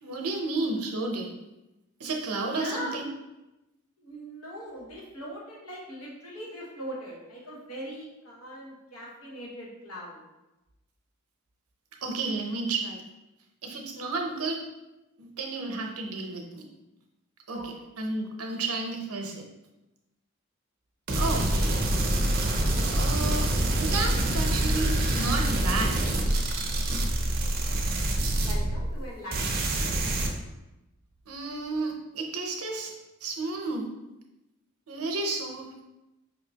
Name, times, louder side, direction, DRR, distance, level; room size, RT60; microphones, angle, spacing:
voice 1, 0.0-1.3 2.0-3.1 12.0-13.0 13.6-14.6 15.2-16.6 17.5-19.4 21.1-21.6 22.9-23.4 23.8-26.0 31.3-32.9 33.2-33.8 34.9-35.8, right 3 dB, 90° right, 2 dB, 0.7 m, -32 dB
voice 2, 2.5-3.0 4.0-10.2 17.5-17.7 28.3-30.3, equal, 80° left, -3 dB, 1.2 m, -41 dB
sound 1, 21.1-29.0 29.3-30.3, right 1 dB, 45° right, 0.5 m, -26 dB
5.0 x 2.8 x 2.8 m, 0.99 s
head